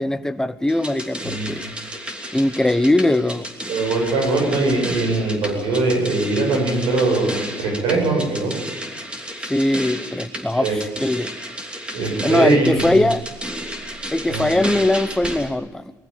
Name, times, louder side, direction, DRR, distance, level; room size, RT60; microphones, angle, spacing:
voice 1, 0.0-1.7 2.3-3.5 9.5-11.3 12.2-13.2 14.1-15.9, left 1 dB, 5° left, 0.9 m, -20 dB
sound 1, 0.7-15.5, equal, 15° right, 3.0 m, -32 dB
voice 2, 1.2-1.7 3.7-8.5 10.5-10.8 11.9-12.9 14.3-14.6, right 3 dB, 85° right, 8.0 m, -21 dB
21.5 x 14.5 x 9.3 m
cardioid pair, 120°, 8 cm